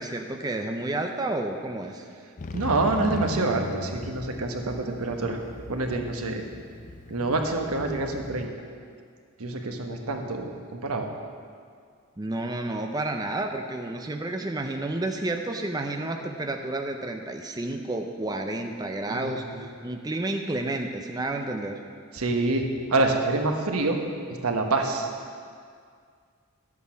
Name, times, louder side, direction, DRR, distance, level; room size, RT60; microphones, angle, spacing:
voice 1, 0.0-2.1 12.2-21.8, right 2 dB, 20° right, 4 dB, 0.5 m, -31 dB
Motorcycle, 2.4-8.5, left 3 dB, 35° left, 0.4 m, -38 dB
voice 2, 2.5-5.4 5.7-6.4 7.1-8.5 9.4-11.1 19.1-19.6 22.1-24.0 24.4-25.1, right 2 dB, 90° right, 3 dB, 1.2 m, -27 dB
11.5 x 8.4 x 5.8 m, 2.1 s
head